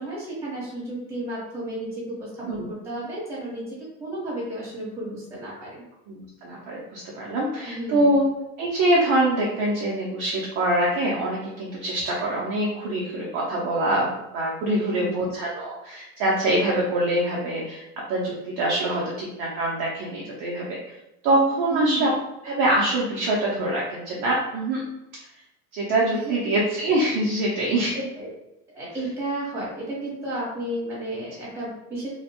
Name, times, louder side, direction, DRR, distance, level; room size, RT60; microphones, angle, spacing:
voice 1, 0.0-5.8 7.7-8.1 14.7-15.3 21.7-22.1 26.1-26.4 27.9-28.3 28.7-32.1, right 1 dB, 5° right, -7 dB, 0.9 m, -32 dB
voice 2, 6.1-8.3 8.6-17.8 18.1-20.8 21.2-22.1 22.4-24.8 25.7-28.0, right 1 dB, 35° right, -4 dB, 0.4 m, -24 dB
2.5 x 2.0 x 2.8 m, 0.87 s
supercardioid pair, 165°, 39 cm